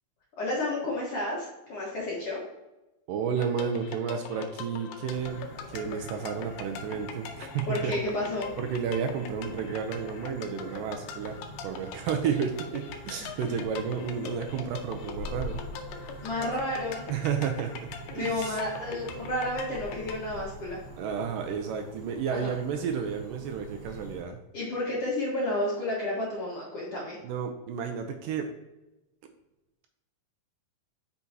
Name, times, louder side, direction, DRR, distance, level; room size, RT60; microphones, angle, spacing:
voice 1, 0.4-2.4 7.7-8.5 16.2-17.1 18.1-20.8 22.3-22.5 24.5-27.2, left 1 dB, 55° left, -5 dB, 1.9 m, -31 dB
voice 2, 3.1-7.9 8.6-11.4 11.6-15.6 17.1-17.9 18.1-18.6 21.0-24.4 27.2-28.5, right 7 dB, 80° right, 5 dB, 1.9 m, -32 dB
sound 1, 3.4-20.2, left 6 dB, 75° left, 2.1 m, -42 dB
sound 2, 5.0-24.2, right 2 dB, 50° right, 1.6 m, -45 dB
8.3 x 5.8 x 2.8 m, 0.99 s
omnidirectional pair, 4.5 m